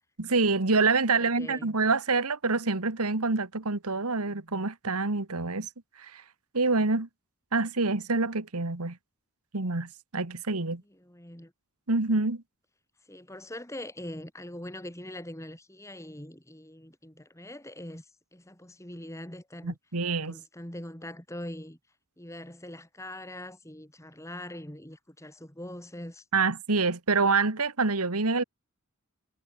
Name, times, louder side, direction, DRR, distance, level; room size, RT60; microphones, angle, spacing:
voice 1, 0.2-5.7 6.0-6.2 6.5-7.1 7.5-9.0 9.5-10.8 11.9-12.4 19.6-20.3 26.3-28.4, right 3 dB, 80° right, 1.8 m, -26 dB
voice 2, 1.1-1.7 10.9-11.5 13.1-18.1 18.3-19.8 20.1-21.8 22.2-26.2, left 1 dB, 15° left, 4.7 m, -42 dB
head